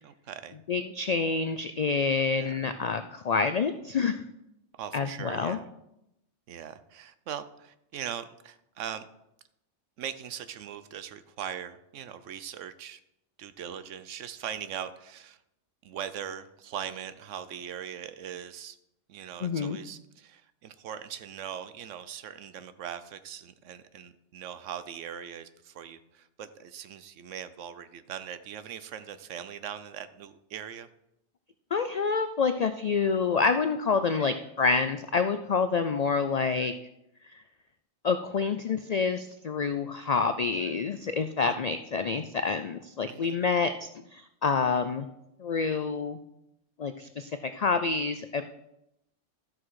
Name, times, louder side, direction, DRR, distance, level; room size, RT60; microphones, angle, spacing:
voice 1, 0.0-0.6 2.3-2.5 4.7-5.7 6.5-9.1 10.0-13.0 13.4-15.4 15.8-18.8 19.1-30.9 41.4-41.6 43.1-43.4, right 9 dB, 80° right, 13 dB, 1.0 m, -40 dB
voice 2, 0.7-4.2 4.9-5.6 19.4-19.8 31.7-36.7 37.3-37.4 38.0-45.1 45.4-46.2 46.8-48.6, left 5 dB, 90° left, 10 dB, 0.3 m, -27 dB
13.0 x 6.1 x 4.7 m, 0.84 s
omnidirectional pair, 1.3 m